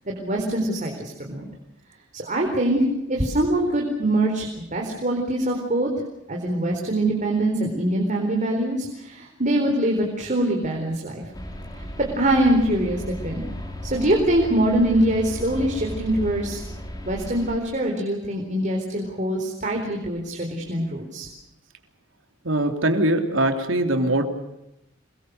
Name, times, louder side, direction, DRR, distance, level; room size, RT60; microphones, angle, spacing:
voice 1, 0.1-1.4 2.1-5.9 6.3-11.2 11.7-13.4 13.8-16.6 17.0-21.3, right 1 dB, 40° right, 1 dB, 4.3 m, -23 dB
sound 1, 11.3-17.6, left 1 dB, 20° left, 4.3 m, -35 dB
voice 2, 22.4-24.2, right 1 dB, 75° right, 5 dB, 3.3 m, -22 dB
27.5 x 23.5 x 6.8 m, 0.85 s
head